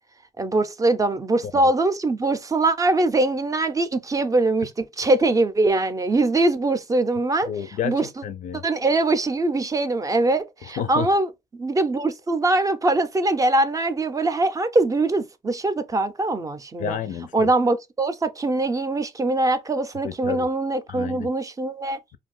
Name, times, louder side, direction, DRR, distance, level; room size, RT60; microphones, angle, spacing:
voice 1, 0.4-7.5 7.8-8.1 8.6-17.0 17.3-22.0, right 2 dB, 25° right, 0.5 m, -22 dB
voice 2, 7.5-8.6 10.8-11.1 16.8-17.5 20.0-20.5 20.9-21.3, left 8 dB, 65° left, 0.4 m, -30 dB
2.5 x 2.3 x 3.6 m
cardioid pair, 85°, 14 cm